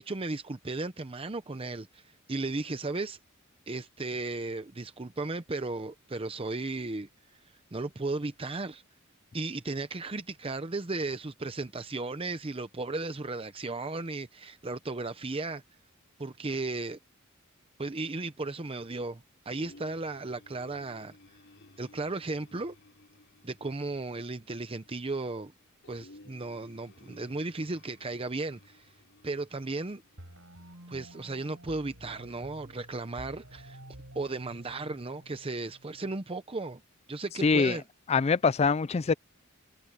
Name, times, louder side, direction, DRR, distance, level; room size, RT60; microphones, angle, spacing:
voice 1, 0.0-3.2 3.7-7.1 7.7-8.8 9.3-15.6 16.2-17.0 17.8-21.1 21.8-22.8 23.4-25.5 25.9-28.9 29.2-30.0 30.9-33.8 34.1-36.8 37.1-37.8, right 3 dB, 25° right, 0.7 m, -35 dB
sound 1, 19.5-30.7, left 2 dB, 60° left, 5.2 m, -58 dB
sound 2, 30.2-36.2, right 1 dB, 75° right, 7.2 m, -50 dB
voice 2, 37.4-37.8 38.1-39.1, left 4 dB, 30° left, 0.4 m, -24 dB
head